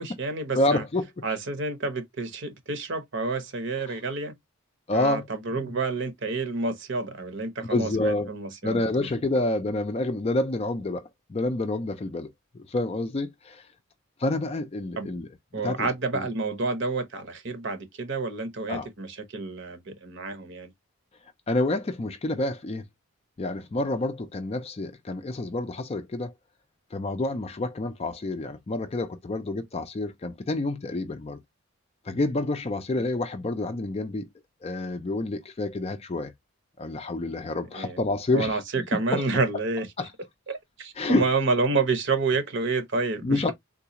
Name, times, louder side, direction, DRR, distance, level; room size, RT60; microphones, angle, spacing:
voice 1, 0.0-0.8 1.2-4.3 4.9-8.9 15.0-15.1 15.5-20.7 37.7-38.0 38.3-39.9 40.5-43.5, right 3 dB, 55° right, 0.8 m, -29 dB
voice 2, 0.6-1.1 3.9-4.0 4.9-5.3 5.6-5.7 7.7-8.3 8.6-13.6 14.2-15.9 16.1-16.3 18.7-18.9 21.5-22.8 23.4-26.3 26.9-31.4 32.1-34.3 34.6-36.3 36.8-38.6 38.9-39.2 40.0-40.1 41.0-41.3 43.2-43.5, left 2 dB, 25° left, 0.4 m, -28 dB
3.8 x 2.3 x 2.8 m
head